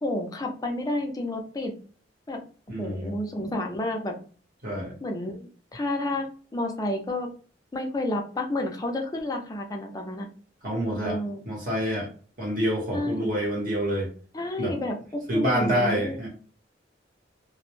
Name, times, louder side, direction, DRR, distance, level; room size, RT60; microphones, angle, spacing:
voice 1, 0.0-1.7 2.3-2.4 2.8-4.2 5.0-5.5 5.7-6.3 6.5-7.3 7.7-10.3 11.0-11.4 12.9-13.3 14.3-16.2, left 1 dB, 20° left, 2 dB, 0.4 m, -30 dB
voice 2, 2.7-3.1 4.6-5.0 10.6-11.2 11.4-12.1 12.4-14.1 14.6-14.8 15.3-16.3, equal, 50° right, -2 dB, 0.9 m, -27 dB
2.0 x 2.0 x 3.0 m, 0.41 s
head